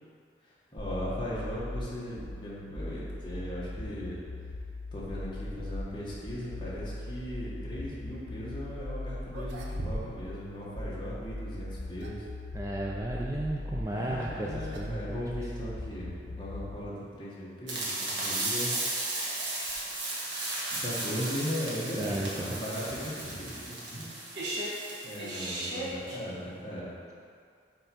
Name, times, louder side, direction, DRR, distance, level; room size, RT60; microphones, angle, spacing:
voice 1, 0.7-4.2 4.9-12.2 13.9-18.8 20.8-24.3 25.0-26.9, equal, 25° left, -7 dB, 1.5 m, -38 dB
sound 1, 0.8-16.8, left 1 dB, 80° left, 0.9 m, -39 dB
sound 2, 9.3-10.4 10.6-10.7 11.6-12.3 14.1-14.4 14.7-15.0 15.3-15.4 16.2-16.3 18.1-20.2, right 1 dB, 70° right, 0.7 m, -43 dB
voice 2, 12.5-15.2 21.9-22.6, right 1 dB, 20° right, -2 dB, 0.4 m, -34 dB
sound 3, 17.7-26.2, right 2 dB, 90° right, 1.5 m, -35 dB
5.7 x 4.4 x 5.3 m, 2.3 s
head